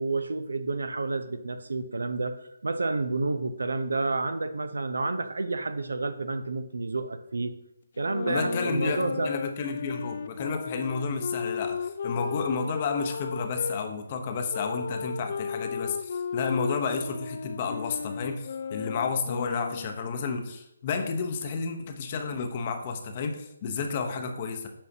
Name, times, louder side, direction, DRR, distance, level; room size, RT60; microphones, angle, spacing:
voice 1, 0.0-2.3 2.6-7.5 8.0-9.3, right 3 dB, 75° right, 10 dB, 0.6 m, -30 dB
sound 1, 8.0-13.8 14.5-20.0, left 6 dB, 50° left, 0.3 m, -34 dB
voice 2, 8.3-24.7, left 5 dB, 35° left, 6 dB, 0.8 m, -31 dB
8.7 x 5.5 x 2.8 m, 0.80 s
figure-of-eight pair, 145°, 0 cm